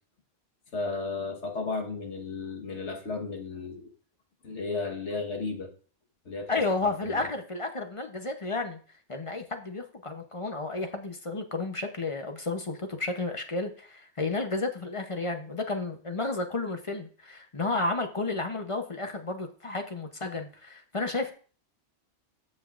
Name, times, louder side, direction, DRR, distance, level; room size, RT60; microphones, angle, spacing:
voice 1, 0.7-3.9 4.4-5.7 6.2-6.5 6.8-7.3, left 3 dB, 80° left, 1 dB, 1.6 m, -34 dB
voice 2, 6.5-8.8 9.1-21.3, left 3 dB, 35° left, 5 dB, 0.7 m, -32 dB
15.0 x 5.3 x 2.4 m, 0.42 s
omnidirectional pair, 1.2 m